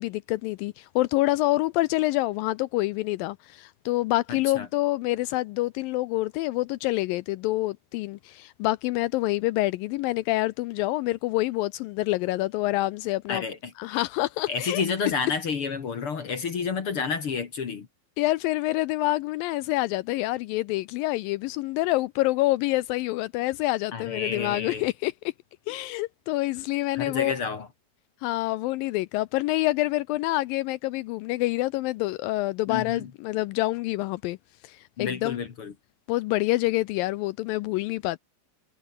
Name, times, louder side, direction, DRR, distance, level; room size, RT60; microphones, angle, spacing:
voice 1, 0.0-13.4 13.8-14.8 18.2-25.1 25.7-27.4 28.2-34.4 34.6-35.4 36.1-38.2, left 18 dB, 85° left, 2.1 m, -27 dB
voice 2, 4.3-4.7 13.3-14.0 14.5-17.9 23.9-24.9 27.0-27.7 32.7-33.1 35.0-35.7, left 5 dB, 45° left, 2.0 m, -30 dB
omnidirectional pair, 4.5 m